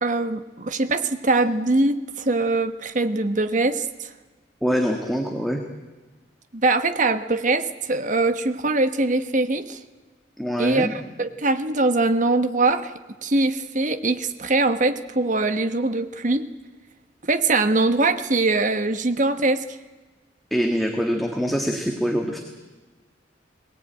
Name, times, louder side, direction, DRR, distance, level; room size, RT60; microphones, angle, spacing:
voice 1, 0.0-4.1 6.5-9.8 10.6-12.9 13.2-16.4 17.3-19.6, right 2 dB, 45° right, 10 dB, 1.2 m, -22 dB
voice 2, 4.6-5.6 10.4-10.9 20.5-22.4, equal, ahead, 2 dB, 1.6 m, -24 dB
22.0 x 18.0 x 9.0 m, 1.3 s
head